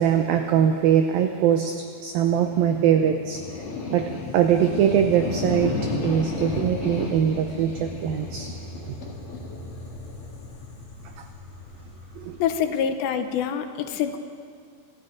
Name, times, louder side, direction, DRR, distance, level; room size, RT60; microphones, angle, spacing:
voice 1, 0.0-3.7 3.9-8.5 11.2-11.3 12.2-12.4, right 9 dB, 85° right, 5 dB, 2.0 m, -22 dB
sound 1, 2.2-12.6, left 3 dB, 45° left, 2.1 m, -33 dB
voice 2, 12.4-14.2, left 8 dB, 80° left, 8 dB, 3.0 m, -26 dB
26.5 x 13.5 x 3.9 m, 2.1 s
omnidirectional pair, 5.0 m